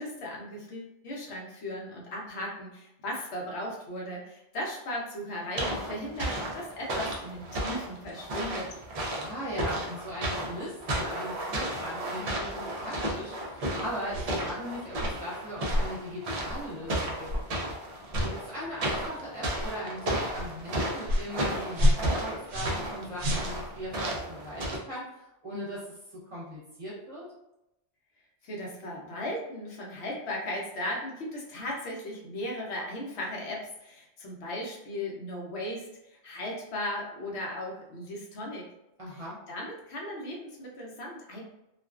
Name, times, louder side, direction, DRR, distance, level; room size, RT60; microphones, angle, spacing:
voice 1, 0.0-8.7 28.4-38.7 39.1-41.4, left 1 dB, 70° left, -2 dB, 0.9 m, -37 dB
sound 1, 5.6-24.8, right 1 dB, 55° right, 0.4 m, -33 dB
voice 2, 9.2-17.3 18.2-27.3 39.0-39.4, equal, 35° right, -7 dB, 0.8 m, -39 dB
sound 2, 14.1-14.4 14.9-15.2 15.7-15.9 16.5-16.7 17.2-17.5 18.1-18.3 18.9-19.1 19.5-19.7 20.3-20.5 21.0-21.3 21.7-22.9 23.2-23.9, left 1 dB, 70° right, 0.8 m, -28 dB
2.3 x 2.3 x 2.3 m, 0.88 s
omnidirectional pair, 1.2 m